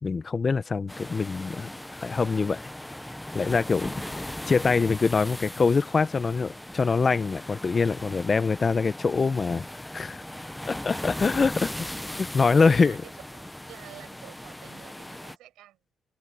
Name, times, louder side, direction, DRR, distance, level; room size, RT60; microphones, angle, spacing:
voice 1, 0.0-1.7 2.0-2.7 3.3-9.6 9.9-10.2 10.7-11.9 12.2-13.0, left 4 dB, 35° left, 0.8 m, -24 dB
sound 1, 0.9-15.4, left 1 dB, 5° left, 0.8 m, -38 dB
voice 2, 12.5-15.9, right 14 dB, 90° right, 6.6 m, -49 dB
cardioid pair, 90°, 0 cm